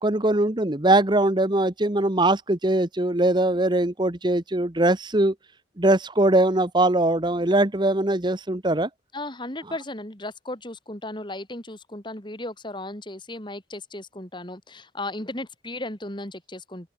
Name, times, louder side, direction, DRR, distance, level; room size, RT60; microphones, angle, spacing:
voice 1, 0.0-5.3 5.8-8.9, right 1 dB, 25° right, 1.1 m, -21 dB
voice 2, 9.1-16.9, left 1 dB, 25° left, 3.5 m, -35 dB
head